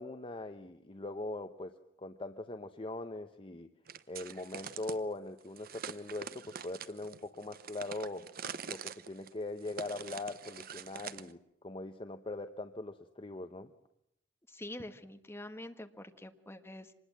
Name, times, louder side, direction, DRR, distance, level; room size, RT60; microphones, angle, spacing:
voice 1, 0.0-3.7 4.1-8.3 8.6-13.7, left 2 dB, 30° left, 8 dB, 0.9 m, -41 dB
sound 1, 3.9-5.0 5.6-11.3, right 7 dB, 55° right, 0.9 m, -45 dB
voice 2, 14.5-16.9, left 1 dB, 15° left, 7 dB, 1.5 m, -46 dB
25.5 x 20.5 x 7.4 m, 0.78 s
head